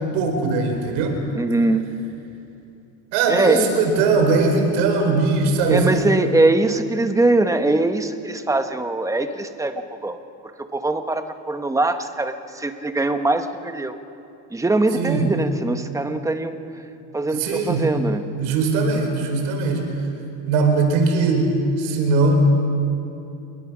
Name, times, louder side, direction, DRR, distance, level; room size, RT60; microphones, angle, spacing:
voice 1, 0.1-1.2 3.1-6.1 15.0-15.3 17.3-17.9 18.4-19.9 20.5-22.4, right 3 dB, 85° right, 4 dB, 4.7 m, -20 dB
voice 2, 1.3-1.9 3.3-3.7 5.7-10.2 10.7-13.9 14.5-16.6 17.1-18.2, right 2 dB, 10° right, 8 dB, 1.2 m, -22 dB
28.0 x 21.5 x 6.2 m, 2.8 s
cardioid pair, 130°, 33 cm